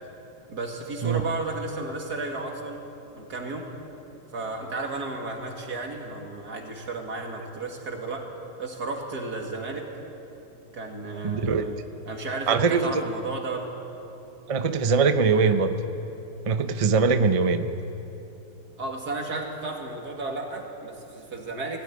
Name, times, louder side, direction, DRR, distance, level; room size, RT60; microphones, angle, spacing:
voice 1, 0.5-2.8 3.1-3.7 4.3-8.3 8.6-9.9 10.7-11.8 12.0-13.7 15.3-15.5 18.8-21.8, right 3 dB, 80° right, 1 dB, 2.8 m, -33 dB
voice 2, 11.2-11.6 12.5-12.9 14.5-15.7 16.5-17.7, right 5 dB, 35° right, 8 dB, 0.6 m, -22 dB
18.0 x 16.0 x 9.6 m, 3.0 s
omnidirectional pair, 1.7 m